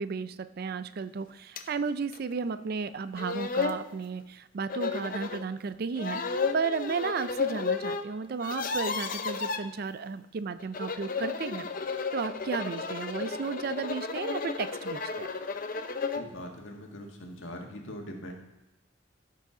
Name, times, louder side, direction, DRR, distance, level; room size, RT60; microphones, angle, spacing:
voice 1, 0.0-11.7 12.1-15.3, right 5 dB, 50° right, 13 dB, 0.4 m, -34 dB
sound 1, 1.6-1.7 2.1-2.2 2.9-3.0 3.2-3.8 4.7-5.4 6.0-8.0 8.3-9.6 10.6-16.3, left 4 dB, 45° left, 0.6 m, -33 dB
voice 2, 16.1-18.3, equal, 75° left, 2 dB, 1.7 m, -42 dB
14.5 x 6.7 x 3.8 m, 0.99 s
head